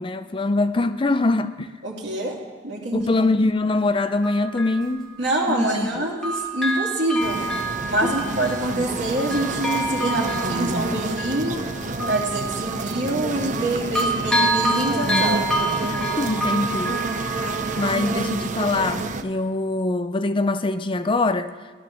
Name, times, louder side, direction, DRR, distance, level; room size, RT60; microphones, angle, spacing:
voice 1, 0.0-1.7 2.9-5.1 5.5-6.1 8.0-8.1 15.8-17.0 17.8-21.5, left 2 dB, 25° left, 0.5 m, -23 dB
voice 2, 1.8-2.4 2.6-3.1 5.2-7.4 7.9-11.6 12.1-15.5, right 1 dB, 65° right, 3.2 m, -25 dB
Bell, 3.0-3.1 4.0-5.9 6.2-13.7 14.0-18.6 19.0-19.1, right 1 dB, 5° left, 2.0 m, -28 dB
sound 1, 7.2-19.2, right 3 dB, 40° right, 0.7 m, -29 dB
17.0 x 12.0 x 6.2 m
head